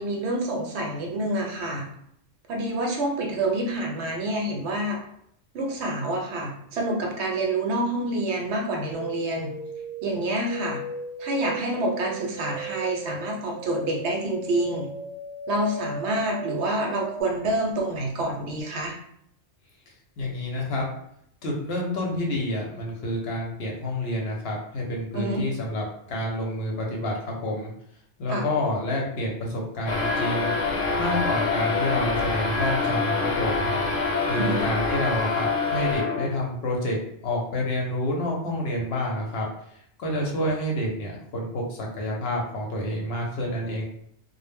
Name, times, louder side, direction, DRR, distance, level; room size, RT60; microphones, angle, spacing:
voice 1, 0.0-1.9 2.5-5.0 5.5-9.5 10.0-10.8 11.2-14.9 15.5-19.0 25.1-25.5 28.3-28.4 34.3-34.6, right 1 dB, 70° right, 1 dB, 0.8 m, -27 dB
sound 1, 8.9-17.2, right 2 dB, 85° right, 0.3 m, -37 dB
voice 2, 20.2-20.9 21.4-27.1 27.4-27.7 28.2-30.5 31.0-33.7 34.3-39.5 39.7-43.8, left 1 dB, 65° left, -1 dB, 0.8 m, -28 dB
sound 2, 29.9-36.5, left 4 dB, 85° left, 0.9 m, -26 dB
2.0 x 2.0 x 3.3 m, 0.70 s
omnidirectional pair, 1.3 m